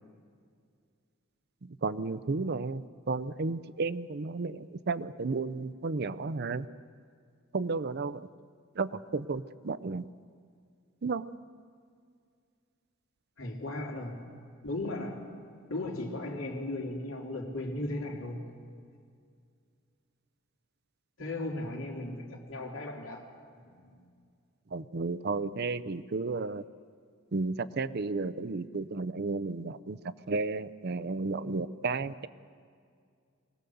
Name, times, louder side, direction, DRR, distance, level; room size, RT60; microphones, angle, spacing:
voice 1, 1.6-6.7 7.5-8.3 8.7-10.0 11.0-11.3 13.7-13.8 24.7-26.6 27.3-30.0 30.3-32.3, right 3 dB, 55° right, 15 dB, 0.6 m, -33 dB
voice 2, 13.4-14.2 14.6-15.2 15.7-18.5 21.2-23.2 23.5-24.0, left 2 dB, 75° left, 0 dB, 3.0 m, -36 dB
23.5 x 18.5 x 7.0 m, 2.2 s
head